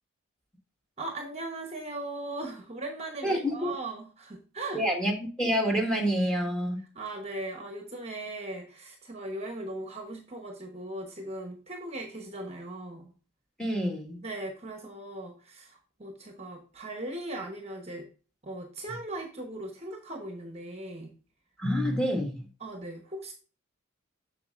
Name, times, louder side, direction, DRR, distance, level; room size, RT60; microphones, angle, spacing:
voice 1, 1.0-4.8 6.9-13.1 14.2-18.1 18.4-21.1 22.6-23.3, right 2 dB, 30° right, 1.0 m, -38 dB
voice 2, 3.2-3.7 4.7-5.1 5.4-6.8 13.6-14.2 21.6-22.4, equal, 5° left, 1.6 m, -27 dB
7.5 x 6.5 x 2.5 m
head